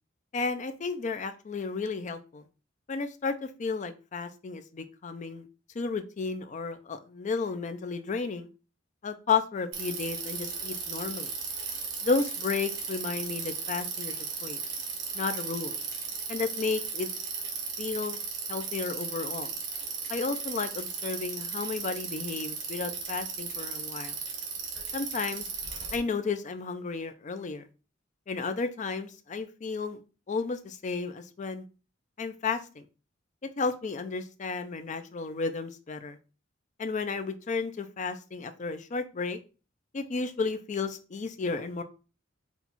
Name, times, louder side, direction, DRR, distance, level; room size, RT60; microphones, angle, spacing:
voice 1, 0.3-2.4 2.9-5.5 5.7-8.5 9.0-11.3 12.0-14.1 14.4-14.6 15.1-15.8 16.3-17.1 17.8-18.2 18.5-19.5 20.1-24.1 24.9-25.5 25.9-27.7 28.3-30.0 30.3-31.6 32.2-32.9 33.6-36.2 36.8-39.4 39.9-41.8, left 4 dB, 40° left, 9 dB, 0.4 m, -32 dB
Bicycle, 9.7-26.0, right 5 dB, 70° right, 1.3 m, -36 dB
4.4 x 2.3 x 4.0 m, 0.33 s
head